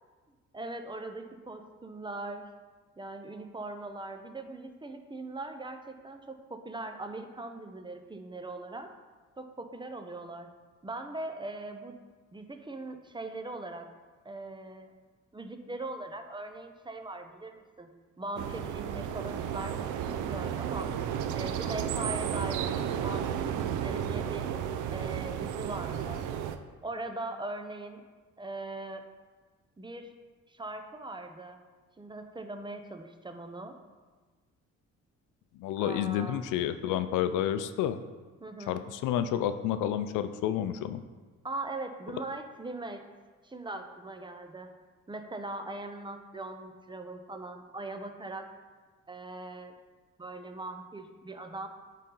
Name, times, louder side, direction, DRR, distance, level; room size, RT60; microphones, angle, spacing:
voice 1, 0.5-2.4 3.0-8.9 9.4-10.5 10.8-12.0 12.3-13.9 14.2-14.9 15.3-17.9 18.2-20.9 21.3-22.7 23.0-24.4 24.9-26.2 26.8-28.0 28.4-29.0 29.8-30.1 30.5-31.6 32.0-33.7 35.8-36.4 38.4-38.9 41.4-43.0 43.4-44.7 45.1-48.5 49.1-49.7 50.2-51.7, right 2 dB, 15° right, 6 dB, 0.7 m, -40 dB
sound 1, 18.4-26.6, right 9 dB, 85° right, 0.5 m, -33 dB
voice 2, 35.6-38.0 38.7-41.0, left 10 dB, 90° left, 11 dB, 0.5 m, -30 dB
9.7 x 4.1 x 3.8 m, 1.4 s
cardioid pair, 90°, 30 cm